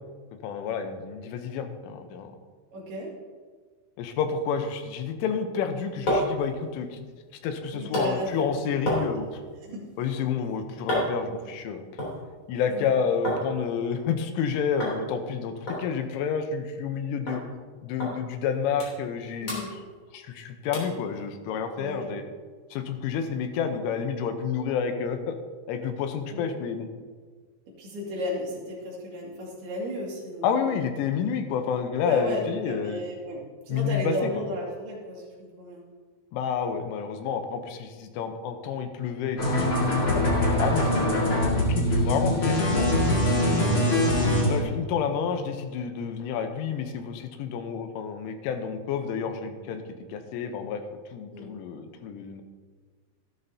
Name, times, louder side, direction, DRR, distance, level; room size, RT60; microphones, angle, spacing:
voice 1, 0.4-2.3 4.0-7.0 7.4-9.4 10.0-11.9 12.5-17.4 17.8-19.7 20.1-22.2 22.7-25.4 25.7-26.9 30.4-33.0 33.7-34.3 36.3-40.0 40.6-42.9 44.4-49.8 50.1-50.8 51.1-52.4, left 6 dB, 90° left, 7 dB, 3.5 m, -29 dB
voice 2, 2.7-3.1 7.7-8.6 9.6-9.9 12.7-12.9 19.4-19.7 21.8-22.2 26.3-26.4 27.7-30.8 32.0-35.8 40.0-40.9 43.4-43.8 51.3-51.5, left 1 dB, 60° right, -4 dB, 4.1 m, -34 dB
sound 1, 5.5-13.4 13.8-14.4 14.8-15.0 15.3-15.4 15.7-17.0 17.3-17.4 18.0-18.1 18.5-19.2 19.4-20.3 20.7-21.0 21.5-21.6, equal, 30° left, 3.4 m, -33 dB
sound 2, 39.4-44.6, left 1 dB, 45° left, 1.7 m, -23 dB
14.5 x 12.5 x 2.8 m, 1.5 s
omnidirectional pair, 5.5 m